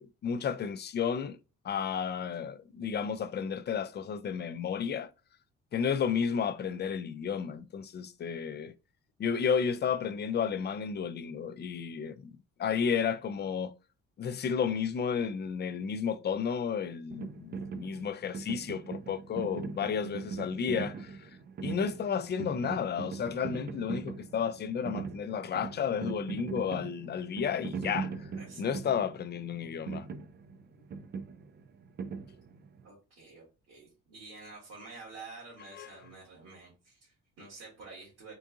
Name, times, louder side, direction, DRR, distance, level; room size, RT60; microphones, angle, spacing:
voice 1, 0.0-1.4 1.6-5.1 5.7-8.7 9.2-12.3 12.6-13.7 14.2-21.3 21.6-28.3 28.6-30.1 35.8-35.9, left 7 dB, 35° left, 0.4 m, -32 dB
sound 1, 17.1-32.9, right 5 dB, 35° right, 0.4 m, -40 dB
voice 2, 28.4-28.7 32.8-38.3, right 3 dB, 70° right, 2.1 m, -49 dB
3.8 x 2.5 x 3.6 m
cardioid pair, 90°, 30 cm